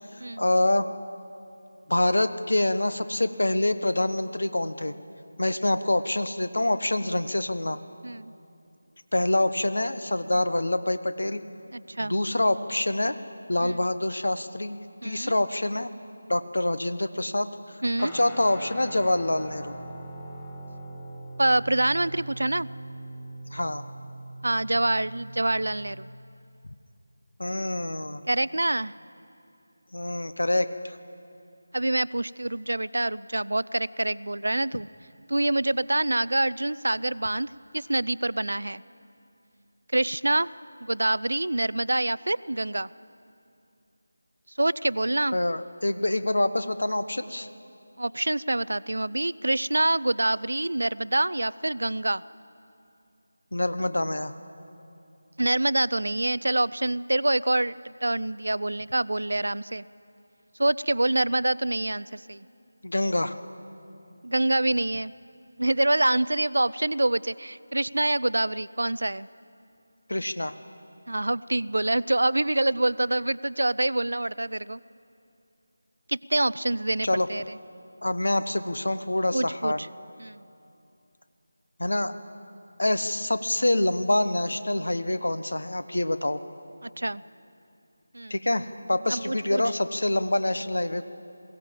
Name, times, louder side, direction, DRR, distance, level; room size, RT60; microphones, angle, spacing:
voice 1, 0.4-0.9 1.9-4.9 5.4-7.8 9.1-11.4 12.0-13.1 13.5-14.8 15.0-15.9 16.3-17.5 18.1-19.7 23.5-23.8 27.4-28.2 29.9-31.0 45.3-47.5 53.5-54.3 62.8-63.4 70.1-70.5 77.0-77.3 78.0-79.8 81.8-82.1 82.8-86.4 88.3-91.0, left 1 dB, 65° left, 11 dB, 1.0 m, -26 dB
voice 2, 11.7-12.1 13.6-13.8 15.0-15.3 17.8-18.1 21.4-22.7 24.4-26.1 28.3-28.9 31.7-34.9 35.3-38.8 39.9-40.5 40.8-42.9 44.6-45.4 48.0-52.2 55.4-59.8 60.6-62.5 64.2-65.1 65.6-69.3 71.1-74.8 76.1-77.4 79.3-79.9 80.2-80.4 86.8-87.2 88.1-88.3 89.1-89.6, right 1 dB, 65° right, 19 dB, 0.4 m, -26 dB
Guitar, 18.0-26.1, right 1 dB, 10° left, 1.3 m, -41 dB
22.0 x 16.0 x 7.5 m, 2.6 s
figure-of-eight pair, 165°, 0 cm